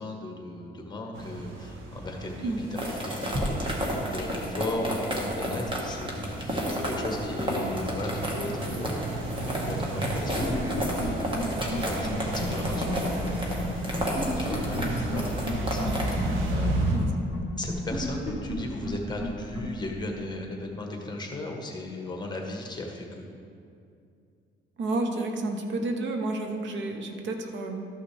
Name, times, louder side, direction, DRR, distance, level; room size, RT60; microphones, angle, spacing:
voice 1, 0.0-17.2 17.6-23.3, left 2 dB, 20° left, 1 dB, 1.2 m, -37 dB
sound 1, 1.1-17.0, right 2 dB, 85° right, 1.2 m, -34 dB
sound 2, 2.8-16.5, equal, 25° right, 1.5 m, -32 dB
sound 3, 10.4-11.0 11.3-11.4 11.7-11.8 12.0-12.1 12.4-12.9 13.2-13.3 13.6-13.7 13.9-14.8 15.1-15.2 15.4-15.5 15.8-15.9 16.1-16.7 17.0-17.1 17.3-17.4 17.7-18.5 18.8-18.9 19.2-19.3 19.5-19.6, left 1 dB, 10° right, 2.1 m, -32 dB
voice 2, 24.8-27.9, right 2 dB, 70° right, 5 dB, 0.9 m, -30 dB
13.0 x 6.1 x 3.3 m, 2.5 s
cardioid pair, 120°, 20 cm